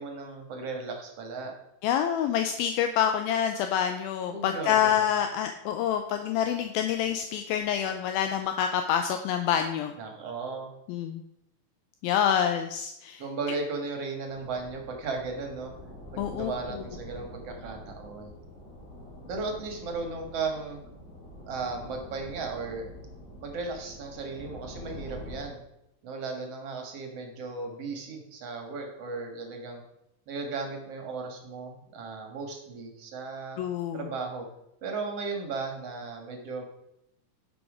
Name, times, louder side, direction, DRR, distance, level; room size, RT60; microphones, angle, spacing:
voice 1, 0.0-1.5 4.3-5.1 10.0-10.7 13.2-15.7 16.1-18.3 19.3-20.8 21.5-22.8 23.4-25.6 26.0-29.8 30.3-33.6 33.9-34.5 34.8-36.6, right 4 dB, 55° right, 3 dB, 1.9 m, -36 dB
voice 2, 1.8-9.9 10.9-11.2 12.0-13.2 16.2-16.5 33.6-34.1, left 9 dB, 80° left, 6 dB, 2.3 m, -27 dB
sound 1, 14.3-25.4, left 1 dB, 65° left, 4.9 m, -45 dB
11.0 x 6.1 x 4.9 m, 0.82 s
omnidirectional pair, 4.4 m